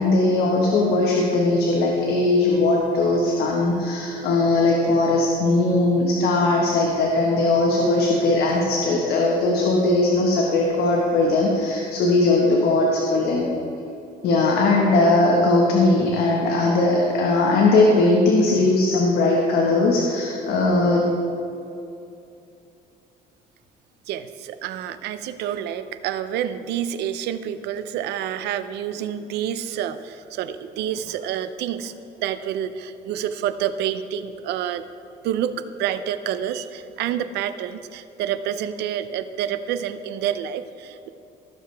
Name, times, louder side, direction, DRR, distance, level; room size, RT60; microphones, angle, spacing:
voice 1, 0.0-13.6 14.2-21.1, left 2 dB, 70° left, -2 dB, 1.3 m, -19 dB
voice 2, 24.1-34.8 35.2-41.1, right 10 dB, 80° right, 12 dB, 0.6 m, -28 dB
17.0 x 6.9 x 3.4 m, 2.7 s
cardioid pair, 110°, 17 cm